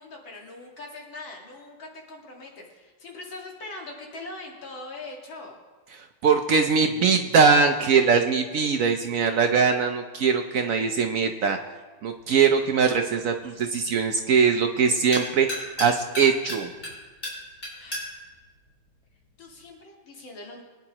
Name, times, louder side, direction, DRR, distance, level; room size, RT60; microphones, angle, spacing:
voice 1, 0.0-5.6 17.8-18.2 19.4-20.6, left 2 dB, 75° left, -1 dB, 2.7 m, -41 dB
voice 2, 6.2-11.6 12.0-16.7, right 5 dB, 80° right, 5 dB, 0.7 m, -21 dB
sound 1, 12.0-19.7, left 1 dB, 35° left, 3.8 m, -39 dB
22.0 x 9.5 x 3.0 m, 1.3 s
omnidirectional pair, 2.2 m